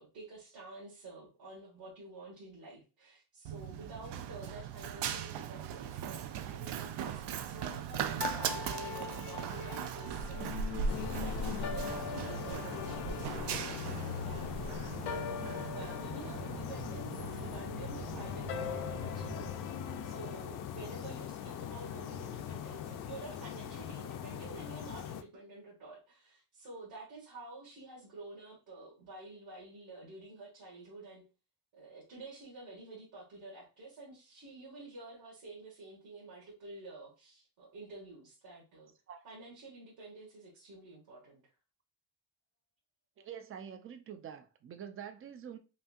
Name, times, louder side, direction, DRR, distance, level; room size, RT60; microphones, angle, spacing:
voice 1, 0.0-19.5 20.0-31.2 31.7-38.9 39.2-41.4, right 2 dB, 65° right, 1.8 m, -50 dB
Run, 3.4-19.5, right 7 dB, 85° right, 0.6 m, -39 dB
sound 1, 8.2-20.4, left 8 dB, 85° left, 0.7 m, -43 dB
sound 2, 10.9-25.2, left 9 dB, 55° left, 0.5 m, -41 dB
voice 2, 43.2-45.6, right 8 dB, 35° right, 0.4 m, -46 dB
5.3 x 2.7 x 2.4 m
cardioid pair, 170°, 39 cm